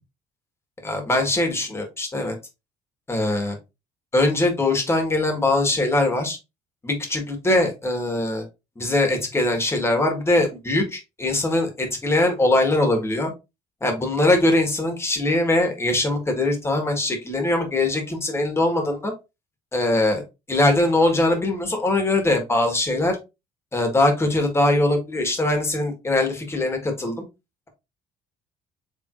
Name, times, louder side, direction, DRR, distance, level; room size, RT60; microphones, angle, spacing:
voice 1, 0.8-2.3 3.1-3.6 4.1-6.4 6.8-8.4 8.8-13.3 13.8-19.1 19.7-20.2 20.5-23.2 23.7-27.2, left 2 dB, 20° left, 4 dB, 1.5 m, -22 dB
4.5 x 3.4 x 2.5 m, 0.25 s
cardioid pair, 115°, 14 cm